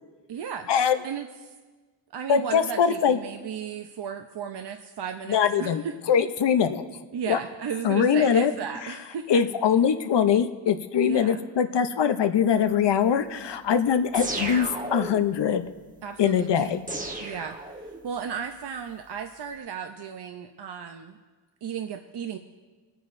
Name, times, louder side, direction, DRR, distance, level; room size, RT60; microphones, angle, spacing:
voice 1, 0.3-0.7 1.0-1.5 2.1-6.0 7.1-9.4 11.0-11.4 16.0-16.8 17.2-17.6 18.0-21.2 21.6-22.4, right 7 dB, 65° right, 6 dB, 0.6 m, -35 dB
voice 2, 2.3-3.2 5.3-5.8 6.1-6.8 7.3-7.4 7.8-8.5 9.3-15.7 16.2-16.8, left 8 dB, 70° left, 9 dB, 0.7 m, -22 dB
sound 1, 14.1-15.4 16.9-18.2, right 2 dB, 20° right, 1.1 m, -33 dB
25.0 x 9.3 x 2.6 m, 1.3 s
cardioid pair, 80°, 44 cm